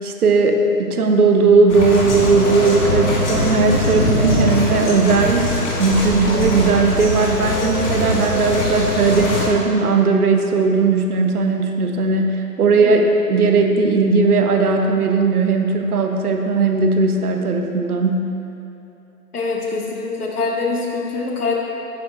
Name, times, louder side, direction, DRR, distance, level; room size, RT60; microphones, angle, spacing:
voice 1, 0.0-5.5 5.8-18.3, right 4 dB, 65° right, 3 dB, 1.2 m, -17 dB
sound 1, 1.7-9.5, left 1 dB, 45° left, 2.0 m, -21 dB
voice 2, 19.3-21.6, left 3 dB, 65° left, -2 dB, 1.9 m, -24 dB
10.5 x 9.7 x 2.6 m, 3.0 s
figure-of-eight pair, 145°, 48 cm